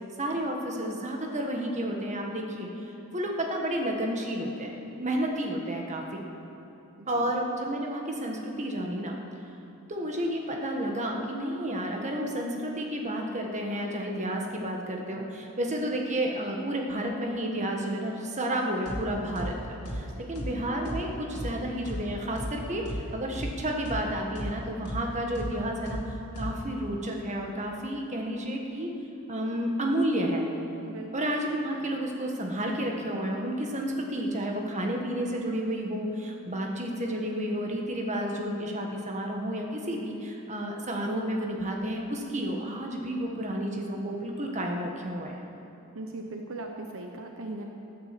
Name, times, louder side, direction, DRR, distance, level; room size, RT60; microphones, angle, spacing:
voice 1, 0.2-2.7 3.1-6.2 7.1-9.2 9.9-19.6 19.9-28.9 29.3-30.5 31.1-45.4, right 1 dB, 30° right, 1 dB, 1.6 m, -31 dB
voice 2, 7.0-7.3 30.8-31.1 45.9-47.7, right 2 dB, 60° right, 3 dB, 1.0 m, -39 dB
sound 1, 18.9-19.0 19.4-19.5 19.9-20.0 20.4-20.5 20.9-21.0 21.4-21.5 21.9-22.0 22.4-22.5 22.9-23.0 23.4-23.5 23.9-24.0 24.4-24.5 24.9-25.0 25.4-25.5 25.9-26.0 26.4-26.5, equal, 85° left, 2.2 m, -34 dB
14.5 x 9.4 x 7.7 m, 2.9 s
head